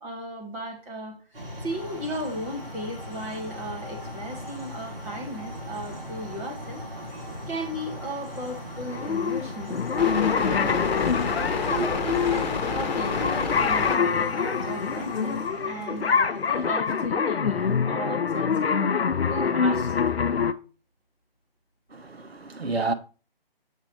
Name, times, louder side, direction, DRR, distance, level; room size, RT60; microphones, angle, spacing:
voice 1, 0.0-6.8 7.5-11.1 11.7-18.6 19.3-20.0, right 1 dB, 5° right, 0.6 m, -36 dB
sound 1, 1.3-16.8, equal, 70° right, 3.0 m, -39 dB
sound 2, 1.7-15.5, left 4 dB, 45° left, 1.3 m, -34 dB
sound 3, 8.9-20.5, left 6 dB, 80° left, 0.6 m, -25 dB
voice 2, 21.9-22.9, right 3 dB, 90° right, 1.1 m, -29 dB
7.3 x 3.2 x 5.5 m
figure-of-eight pair, 145°, 30 cm